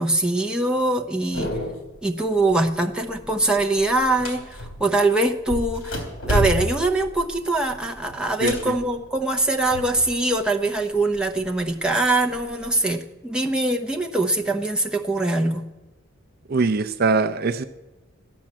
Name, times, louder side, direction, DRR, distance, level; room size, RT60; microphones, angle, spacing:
voice 1, 0.0-1.5 2.0-15.7, right 2 dB, 5° right, 1 dB, 0.9 m, -23 dB
sound 1, 1.3-2.0 2.4-2.8 3.1-5.0 5.5-10.2 10.5-11.5 12.0-12.8, equal, 70° left, 3.2 m, -30 dB
voice 2, 16.5-17.6, right 4 dB, 50° right, 9 dB, 0.5 m, -21 dB
13.5 x 10.0 x 7.5 m, 1.1 s
head